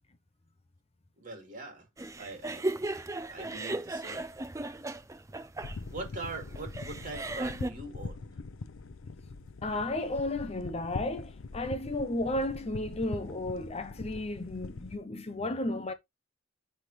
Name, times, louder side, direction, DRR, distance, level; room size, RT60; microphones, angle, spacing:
voice 1, 1.2-1.9 2.2-3.0 3.3-4.3 5.9-8.3, right 3 dB, 40° right, 2.4 m, -42 dB
sound 1, 2.0-7.7, right 2 dB, 15° right, 0.6 m, -36 dB
sound 2, 5.6-15.0, left 3 dB, 80° left, 0.6 m, -42 dB
voice 2, 9.6-15.9, left 2 dB, 30° left, 0.6 m, -33 dB
10.0 x 3.5 x 3.1 m
head